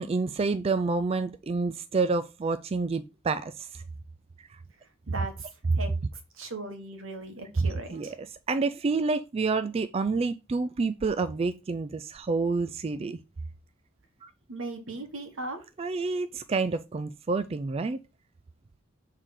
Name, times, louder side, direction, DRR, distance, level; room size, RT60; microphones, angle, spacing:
voice 1, 0.0-3.8 4.5-4.6 7.6-13.2 14.2-14.3 15.8-18.0, right 4 dB, 30° right, 0.3 m, -28 dB
voice 2, 5.1-5.5 5.8-5.9 6.3-8.1 14.5-15.6, right 2 dB, 75° right, 1.6 m, -38 dB
6.6 x 3.7 x 4.8 m
head